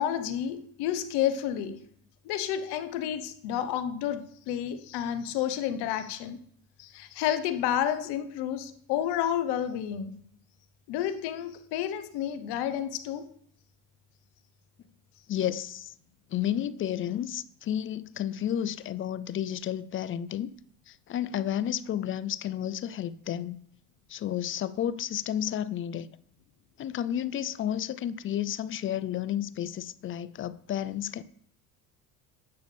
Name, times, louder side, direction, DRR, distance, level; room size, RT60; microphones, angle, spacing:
voice 1, 0.0-1.8 2.2-6.4 6.8-10.1 10.9-13.3, left 10 dB, 65° left, 1.0 m, -30 dB
voice 2, 15.3-15.9 16.3-20.5 20.9-23.6 24.1-26.1 26.8-31.2, left 10 dB, 30° left, 0.4 m, -31 dB
9.3 x 6.6 x 3.3 m
supercardioid pair, 85°, 42 cm